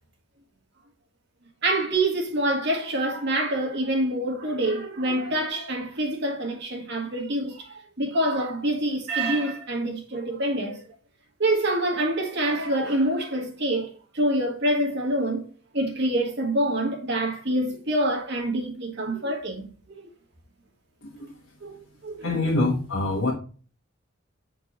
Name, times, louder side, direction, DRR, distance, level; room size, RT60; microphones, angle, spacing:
voice 1, 1.6-10.8 11.4-15.4 15.7-19.7 21.6-21.8 22.0-22.3, right 1 dB, 55° right, 1.6 m, -26 dB
voice 2, 21.0-21.3 22.2-23.3, left 2 dB, 70° left, 1.3 m, -25 dB
7.9 x 4.6 x 3.0 m
head